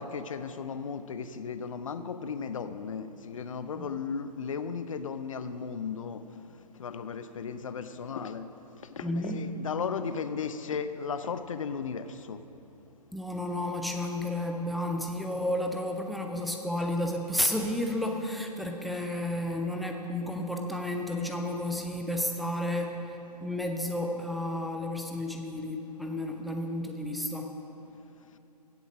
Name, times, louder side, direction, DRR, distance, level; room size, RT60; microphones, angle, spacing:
voice 1, 0.0-6.4 6.7-8.5 8.9-12.4, left 6 dB, 50° left, 11 dB, 0.7 m, -35 dB
voice 2, 9.0-9.4 13.1-27.6, left 1 dB, ahead, 2 dB, 0.5 m, -32 dB
16.0 x 7.9 x 6.1 m, 2.9 s
figure-of-eight pair, 125°, 21 cm